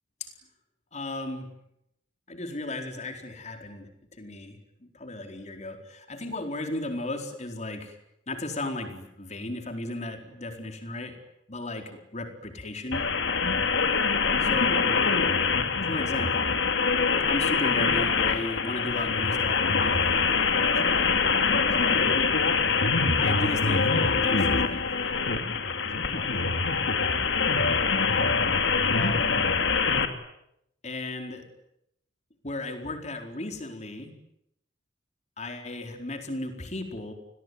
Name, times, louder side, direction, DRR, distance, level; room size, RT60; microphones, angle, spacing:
voice 1, 0.9-1.5 2.3-8.0 8.3-11.2 11.5-13.0 14.4-15.1 15.8-16.6 17.3-21.2 21.8-22.2 23.2-25.2 25.9-26.6 28.9-29.6 30.8-31.4 32.4-34.1 35.4-37.1, left 2 dB, 35° left, 5 dB, 4.4 m, -35 dB
sound 1, 12.9-30.1, left 5 dB, 75° left, 2.7 m, -24 dB
30.0 x 21.0 x 9.5 m, 0.80 s
head